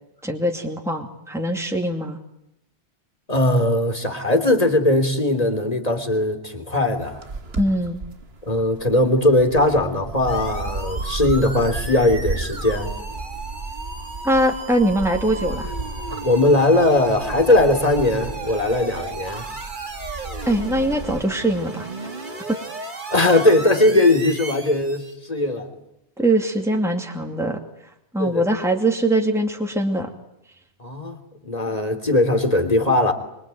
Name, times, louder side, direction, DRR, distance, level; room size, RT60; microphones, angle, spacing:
voice 1, 0.2-2.2 7.6-8.0 14.2-15.7 20.5-22.1 22.5-22.6 26.2-27.6 28.1-30.1, right 1 dB, 5° right, 3 dB, 2.5 m, -22 dB
voice 2, 3.3-7.2 8.4-12.9 16.2-19.5 23.1-25.7 28.2-28.5 30.8-33.1, left 2 dB, 35° left, 7 dB, 3.5 m, -19 dB
sound 1, 6.9-21.2, right 3 dB, 75° right, 2.0 m, -34 dB
sound 2, 10.3-25.1, right 3 dB, 50° right, 2.5 m, -35 dB
25.0 x 24.5 x 9.2 m, 0.79 s
omnidirectional pair, 1.1 m